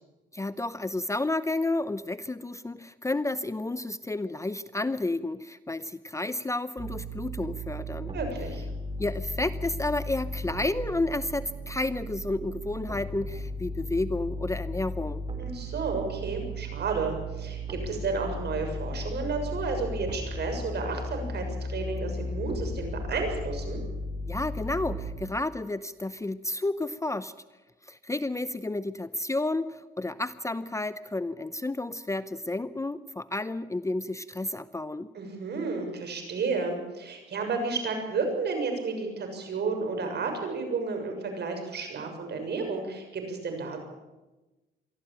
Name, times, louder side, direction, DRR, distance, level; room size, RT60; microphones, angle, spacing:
voice 1, 0.3-8.1 9.0-15.2 24.3-27.3 27.9-35.1, left 2 dB, 15° left, 14 dB, 0.8 m, -31 dB
sound 1, 6.8-25.3, equal, 25° right, 3.9 m, -35 dB
voice 2, 8.1-8.6 15.4-23.8 35.1-43.8, right 4 dB, 55° right, 4 dB, 6.7 m, -32 dB
23.5 x 14.0 x 8.9 m, 1.1 s
cardioid pair, 90°, 20 cm